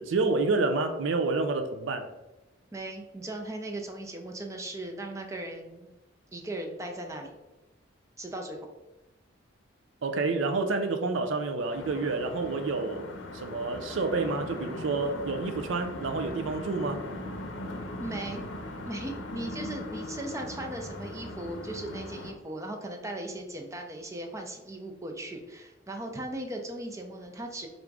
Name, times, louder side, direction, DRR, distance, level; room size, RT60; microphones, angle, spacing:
voice 1, 0.0-2.1 10.0-17.0, right 3 dB, 75° right, 0.5 m, -29 dB
voice 2, 2.7-5.9 6.3-7.4 8.2-8.7 18.0-18.4 18.9-27.7, right 1 dB, 15° right, 0.5 m, -38 dB
sound 1, 11.7-22.3, left 1 dB, 75° left, 0.6 m, -39 dB
3.5 x 2.6 x 4.6 m
head